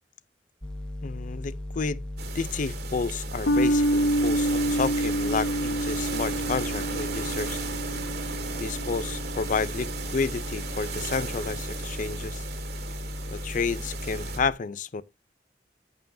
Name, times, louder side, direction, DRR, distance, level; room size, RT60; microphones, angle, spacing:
sound 1, 0.6-14.5, left 1 dB, 5° left, 0.9 m, -36 dB
voice 1, 1.0-2.0 2.3-7.6 8.5-12.4 13.3-15.0, left 5 dB, 45° left, 0.5 m, -31 dB
sound 2, 2.2-14.4, right 5 dB, 65° right, 1.9 m, -36 dB
sound 3, 3.5-10.2, equal, 75° left, 0.7 m, -28 dB
14.5 x 5.5 x 2.6 m
head